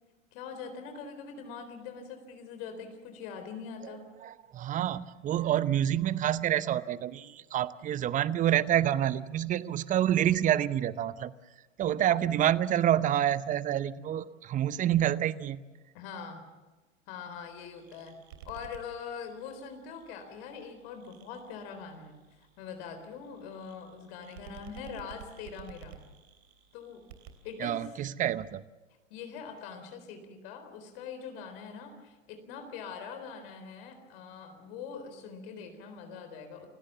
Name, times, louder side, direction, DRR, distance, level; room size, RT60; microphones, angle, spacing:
voice 1, 0.3-4.1 15.9-16.4 17.1-18.2 18.4-22.2 22.6-26.0 26.7-27.0 27.4-27.8 29.1-36.7, left 6 dB, 50° left, 7 dB, 4.1 m, -43 dB
voice 2, 4.2-11.3 11.8-15.6 27.6-28.6, right 11 dB, 20° right, 17 dB, 0.7 m, -28 dB
sound 1, 17.3-28.6, right 9 dB, 55° right, 3.3 m, -54 dB
29.5 x 16.5 x 7.2 m, 1.2 s
hypercardioid pair, 100°, 38 cm